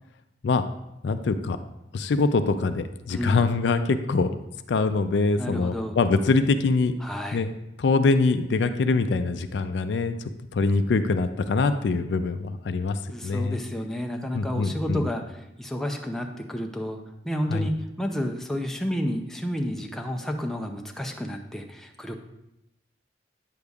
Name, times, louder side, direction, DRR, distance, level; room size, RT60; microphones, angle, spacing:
voice 1, 1.0-1.6 1.9-4.3 4.7-6.9 7.3-7.5 7.8-10.2 10.5-13.6 14.3-15.0 17.5-17.7, left 3 dB, 65° left, 9 dB, 0.4 m, -24 dB
voice 2, 3.1-3.4 5.4-6.0 7.0-7.5 13.1-22.1, equal, ahead, 2 dB, 0.5 m, -31 dB
9.2 x 6.7 x 2.4 m, 0.88 s
head